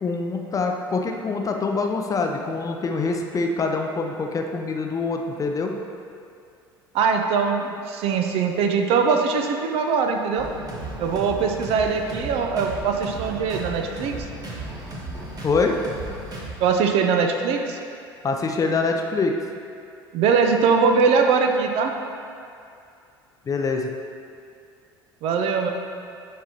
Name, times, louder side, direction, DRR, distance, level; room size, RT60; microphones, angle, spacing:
voice 1, 0.0-5.7 15.4-15.7 18.2-19.3 23.5-23.9, left 4 dB, 30° left, 3 dB, 0.6 m, -25 dB
voice 2, 6.9-10.5 11.0-14.1 16.6-17.8 20.1-21.9 25.2-25.7, right 5 dB, 50° right, 4 dB, 0.6 m, -21 dB
sound 1, 10.4-16.5, right 1 dB, 30° right, 1.4 m, -35 dB
10.0 x 4.6 x 2.9 m, 2.4 s
figure-of-eight pair, 65°, 12 cm